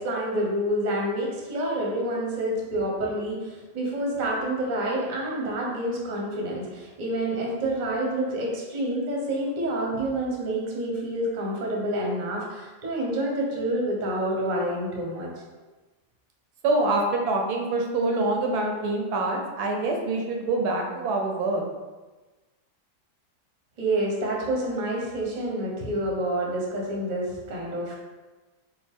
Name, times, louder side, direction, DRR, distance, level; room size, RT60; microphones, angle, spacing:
voice 1, 0.0-15.3 23.8-27.9, right 1 dB, 40° right, -2 dB, 0.7 m, -28 dB
voice 2, 16.6-21.6, right 2 dB, 75° right, 2 dB, 1.1 m, -25 dB
4.8 x 2.1 x 3.5 m, 1.2 s
omnidirectional pair, 1.7 m